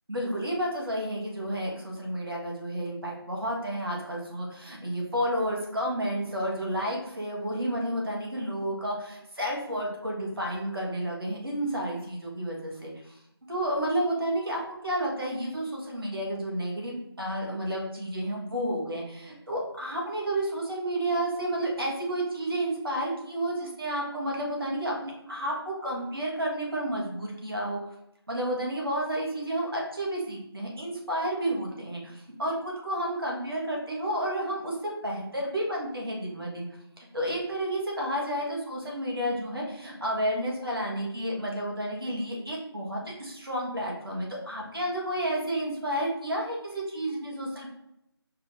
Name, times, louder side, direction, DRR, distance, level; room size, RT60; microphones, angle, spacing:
voice 1, 0.1-13.2 13.5-27.9 28.3-34.7 35.0-36.7 37.0-47.7, right 1 dB, 65° right, -2 dB, 1.4 m, -31 dB
4.6 x 2.6 x 3.4 m, 0.82 s
figure-of-eight pair, 165°, 13 cm